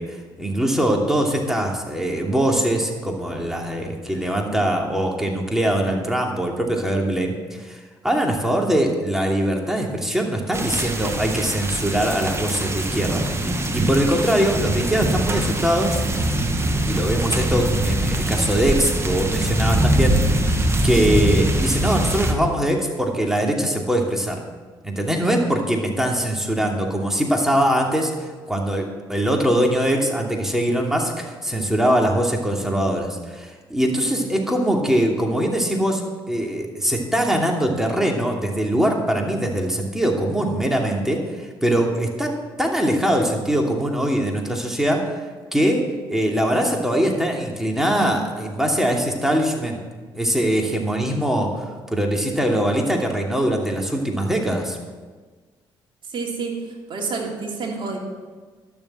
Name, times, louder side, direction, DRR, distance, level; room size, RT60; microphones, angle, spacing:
voice 1, 0.0-16.0 16.8-24.4 24.8-36.0 36.3-45.2 45.5-49.8 50.1-54.8, right 1 dB, 5° right, 1 dB, 2.7 m, -22 dB
sound 1, 10.5-22.3, right 1 dB, 25° right, 1.6 m, -22 dB
voice 2, 56.1-56.5 56.9-58.0, right 4 dB, 60° right, 0 dB, 3.0 m, -28 dB
12.0 x 7.2 x 7.5 m, 1.4 s
supercardioid pair, 70°, 10 cm